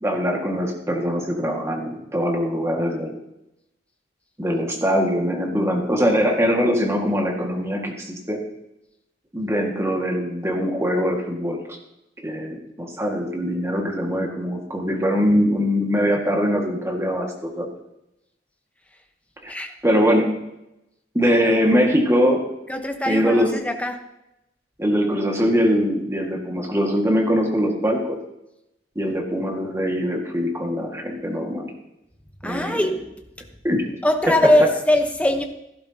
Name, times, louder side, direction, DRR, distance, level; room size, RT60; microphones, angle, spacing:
voice 1, 0.0-3.1 4.4-8.4 9.3-11.8 12.2-17.7 19.4-19.5 19.8-20.4 21.1-22.5 23.1-23.5 24.8-28.2 29.0-31.7 32.4-32.8 33.6-33.9, equal, 15° right, 0 dB, 1.8 m, -22 dB
voice 2, 22.7-24.0 32.4-33.1 34.0-35.4, left 1 dB, 5° left, 5 dB, 1.0 m, -21 dB
16.0 x 11.5 x 2.8 m, 0.88 s
head